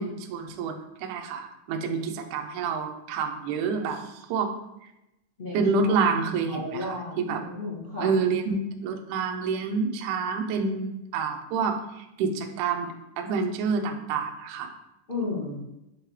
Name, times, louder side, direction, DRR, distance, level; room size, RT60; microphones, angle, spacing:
voice 1, 0.0-4.5 5.5-7.4 8.0-14.7, right 4 dB, 90° right, 4 dB, 1.7 m, -28 dB
voice 2, 5.4-5.9 6.5-8.1 15.1-15.6, left 3 dB, 70° left, -8 dB, 0.5 m, -33 dB
8.1 x 3.7 x 3.2 m, 0.90 s
omnidirectional pair, 4.4 m